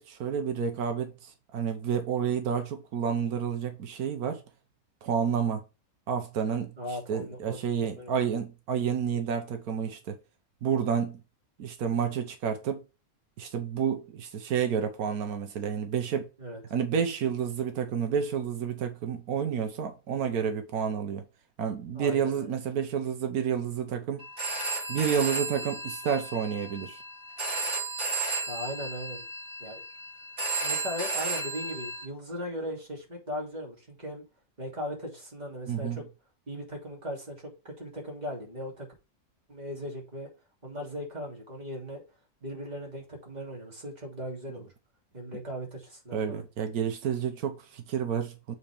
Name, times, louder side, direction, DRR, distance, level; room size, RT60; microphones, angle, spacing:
voice 1, 0.0-4.4 5.0-5.6 6.1-6.7 7.1-10.2 10.6-11.2 11.6-12.8 13.4-16.3 16.7-21.2 21.6-24.2 24.9-27.0 35.7-36.0 46.1-48.5, right 7 dB, 85° right, 1.4 m, -30 dB
voice 2, 6.8-8.1 16.4-16.6 21.9-22.5 28.5-29.2 29.6-29.8 30.6-34.2 34.6-36.0 36.5-37.5 37.8-38.9 39.5-40.3 40.6-42.0 42.4-44.7 45.1-46.4, equal, 30° right, 2.9 m, -38 dB
Telephone, 24.2-32.0, right 2 dB, 50° right, 4.4 m, -34 dB
8.0 x 4.2 x 3.4 m
omnidirectional pair, 1.5 m